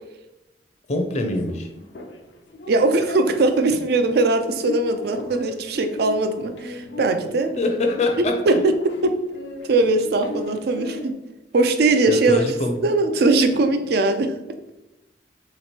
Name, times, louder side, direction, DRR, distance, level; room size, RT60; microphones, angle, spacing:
voice 1, 0.9-1.7 7.6-8.6 12.1-12.8, left 2 dB, 40° left, 4 dB, 0.5 m, -24 dB
sound 1, 1.3-11.1, left 2 dB, 85° left, 0.5 m, -37 dB
voice 2, 2.7-7.6 8.5-8.6 8.8-9.1 9.7-11.1 11.5-12.4 12.8-14.3, right 2 dB, 60° right, 8 dB, 0.4 m, -20 dB
3.3 x 3.0 x 4.3 m, 0.96 s
head